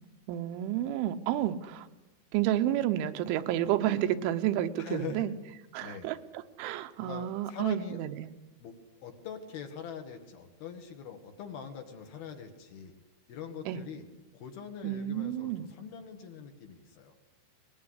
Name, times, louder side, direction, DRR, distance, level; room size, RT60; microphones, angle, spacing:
voice 1, 0.3-1.9 2.3-5.3 5.7-8.3 13.7-13.8 14.8-15.7, right 12 dB, 85° right, 9 dB, 3.5 m, -30 dB
voice 2, 4.8-5.3 5.8-6.1 7.0-8.0 8.6-12.9 13.3-14.0 14.3-17.1, left 7 dB, 60° left, 5 dB, 3.2 m, -43 dB
22.0 x 20.0 x 9.7 m, 1.1 s
omnidirectional pair, 5.4 m